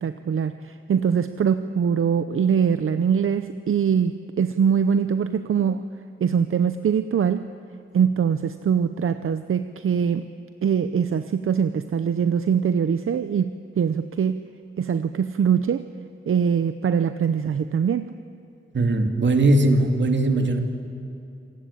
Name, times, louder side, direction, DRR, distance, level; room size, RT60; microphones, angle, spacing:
voice 1, 0.0-5.8 6.2-7.5 7.9-10.3 10.6-14.4 14.8-15.9 16.3-18.1, right 7 dB, 80° right, 11 dB, 0.7 m, -23 dB
voice 2, 18.7-20.6, right 2 dB, 60° right, 5 dB, 2.4 m, -19 dB
27.0 x 19.0 x 8.6 m, 2.7 s
wide cardioid pair, 120°, 21 cm